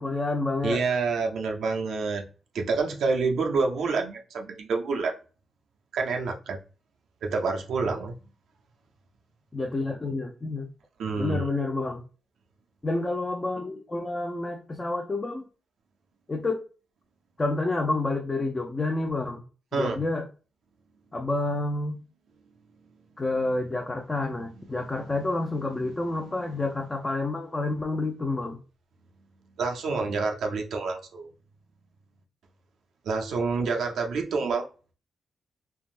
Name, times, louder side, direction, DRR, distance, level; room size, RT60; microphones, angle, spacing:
voice 1, 0.0-0.8 9.5-10.7 11.2-12.0 12.8-15.4 16.3-16.6 17.4-19.4 19.8-20.3 21.1-22.0 23.2-28.6, left 2 dB, 25° left, 1 dB, 0.4 m, -29 dB
voice 2, 0.6-2.2 2.5-5.1 5.9-6.6 7.2-8.2 11.0-11.5 19.7-20.0 26.2-26.3 29.6-31.3 33.1-34.7, right 4 dB, 80° right, 2 dB, 0.5 m, -27 dB
3.4 x 2.0 x 2.4 m, 0.36 s
cardioid pair, 110°, 0 cm